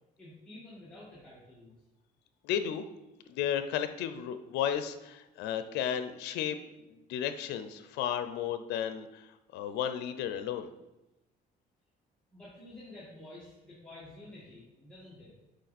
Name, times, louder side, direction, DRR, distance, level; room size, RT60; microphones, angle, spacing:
voice 1, 0.2-1.7 12.3-15.3, left 1 dB, 5° left, -9 dB, 1.9 m, -50 dB
voice 2, 2.4-2.8 3.3-6.6 6.9-10.7, left 9 dB, 85° left, 9 dB, 0.5 m, -33 dB
6.4 x 4.8 x 4.2 m, 0.97 s
cardioid pair, 110°, 17 cm